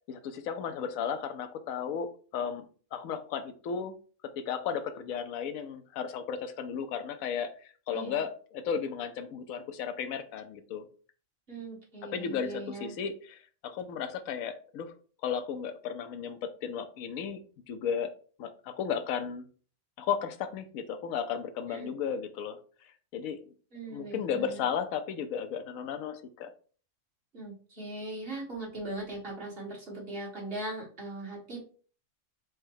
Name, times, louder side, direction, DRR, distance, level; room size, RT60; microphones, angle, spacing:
voice 1, 0.1-2.6 2.9-4.0 4.4-10.9 12.1-15.0 15.2-17.4 17.7-18.1 18.4-19.4 20.0-22.6 23.1-23.4 23.9-26.5, left 7 dB, 80° left, 9 dB, 1.0 m, -34 dB
voice 2, 7.9-8.2 11.5-12.9 21.7-21.9 23.7-24.6 27.3-31.6, right 2 dB, 45° right, -5 dB, 1.9 m, -40 dB
4.8 x 2.2 x 4.5 m, 0.41 s
omnidirectional pair, 1.4 m